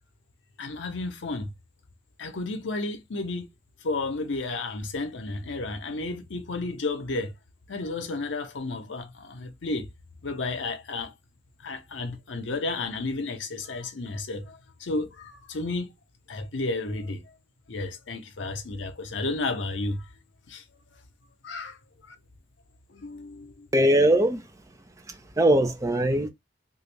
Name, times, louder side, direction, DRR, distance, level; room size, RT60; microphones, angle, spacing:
voice 1, 0.6-1.5 2.2-3.5 3.8-7.3 7.7-9.9 10.2-11.1 11.6-15.9 16.3-17.2 17.7-20.0 20.5-20.6 21.4-21.8 22.1-22.2 22.9-23.7, left 3 dB, 75° left, 0.7 m, -32 dB
voice 2, 23.7-24.4 25.4-26.3, right 1 dB, 15° right, 0.6 m, -20 dB
2.9 x 2.5 x 3.2 m
head